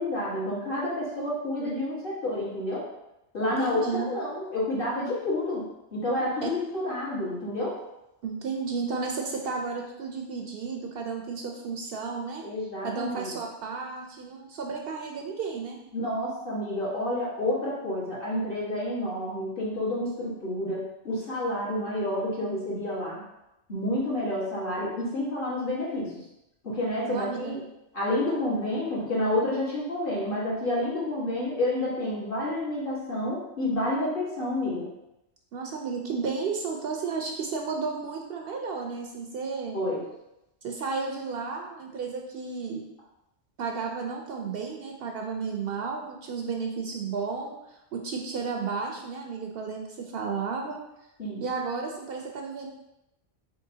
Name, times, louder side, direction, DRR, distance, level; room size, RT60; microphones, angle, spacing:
voice 1, 0.0-2.8 3.3-5.6 5.9-7.8 12.4-13.3 15.9-23.2 23.7-26.1 26.6-27.6 27.9-34.9 39.7-40.0 51.2-51.4, left 1 dB, 50° left, -8 dB, 1.7 m, -29 dB
voice 2, 3.4-4.1 6.4-6.5 8.2-12.4 12.8-15.8 27.1-27.6 35.5-39.8 40.6-42.8 43.6-50.8 51.4-52.7, right 5 dB, 65° right, 1 dB, 0.7 m, -33 dB
4.2 x 3.7 x 2.7 m, 0.88 s
omnidirectional pair, 1.2 m